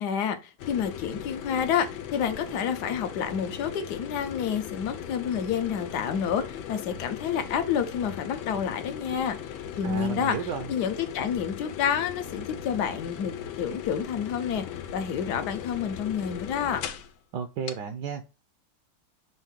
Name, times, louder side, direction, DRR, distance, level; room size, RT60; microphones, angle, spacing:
voice 1, 0.0-9.4 9.8-16.8, left 8 dB, 65° left, 1.2 m, -29 dB
sound 1, 0.6-17.1 17.7-17.8, left 9 dB, 80° left, 1.5 m, -38 dB
voice 2, 9.8-10.7 17.3-18.3, right 7 dB, 70° right, 1.1 m, -33 dB
5.6 x 2.6 x 3.6 m
omnidirectional pair, 2.1 m